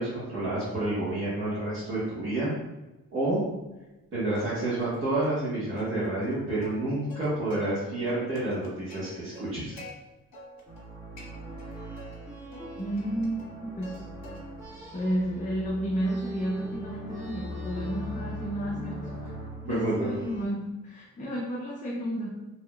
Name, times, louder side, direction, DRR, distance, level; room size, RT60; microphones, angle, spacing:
voice 1, 0.0-2.5 3.1-3.4 4.1-9.8 19.7-20.1, right 2 dB, 35° right, -12 dB, 1.4 m, -29 dB
Plucked string instrument, 4.3-5.0 5.2-5.4 5.8-7.8 8.1-9.9 10.3-10.9 11.2-12.1 12.5-14.0 14.2-14.7 15.1-19.4, left 1 dB, 55° left, 1.3 m, -48 dB
sound 1, 10.7-20.4, equal, 10° right, 1.3 m, -40 dB
voice 2, 12.8-14.1 14.9-19.3 19.6-22.4, right 1 dB, 20° left, -3 dB, 0.5 m, -32 dB
5.0 x 3.0 x 2.3 m, 1.0 s
cardioid pair, 155°, 35 cm